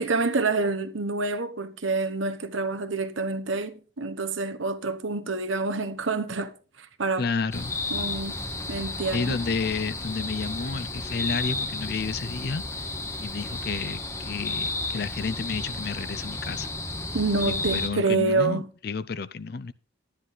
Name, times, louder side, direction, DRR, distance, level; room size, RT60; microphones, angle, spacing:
voice 1, 0.0-7.3 7.9-8.4 8.7-9.4 17.1-18.7, right 3 dB, 80° right, 1.1 m, -27 dB
voice 2, 7.2-7.7 9.1-12.9 13.2-16.7 17.5-19.7, left 4 dB, 50° left, 0.5 m, -31 dB
sound 1, 7.5-17.9, left 2 dB, 15° left, 0.9 m, -32 dB
11.5 x 10.0 x 3.9 m
head